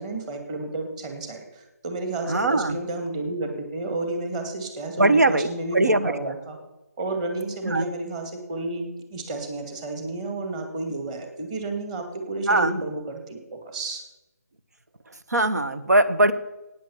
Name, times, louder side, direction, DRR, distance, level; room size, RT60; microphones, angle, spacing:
voice 1, 0.0-6.6 7.0-14.0, right 2 dB, 25° right, 5 dB, 2.3 m, -31 dB
voice 2, 2.3-2.8 5.0-6.1 7.6-7.8 12.5-12.8 15.3-16.3, right 2 dB, 80° right, 11 dB, 1.4 m, -21 dB
15.5 x 9.4 x 7.3 m, 1.0 s
figure-of-eight pair, 165°, 9 cm